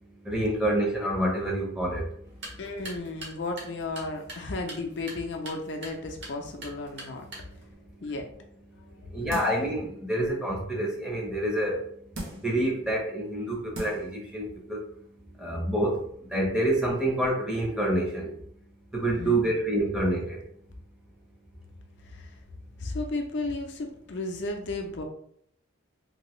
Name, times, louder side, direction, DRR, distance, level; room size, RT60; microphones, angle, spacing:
voice 1, 0.0-2.6 7.3-8.0 8.7-18.4 18.9-20.4, right 1 dB, 5° right, -3 dB, 0.7 m, -28 dB
sound 1, 2.2-7.7, right 1 dB, 60° right, 1.1 m, -45 dB
voice 2, 2.6-7.3 7.5-7.7 8.0-8.3 8.9-9.0 19.2-19.5 22.0-22.4 22.8-25.0, left 2 dB, 60° left, 3 dB, 0.5 m, -34 dB
sound 2, 9.3-9.7 10.2-10.3 12.1-12.6 13.3-13.4 13.7-14.2 14.5-14.6, right 1 dB, 85° right, 0.9 m, -38 dB
2.9 x 2.6 x 3.0 m, 0.67 s
head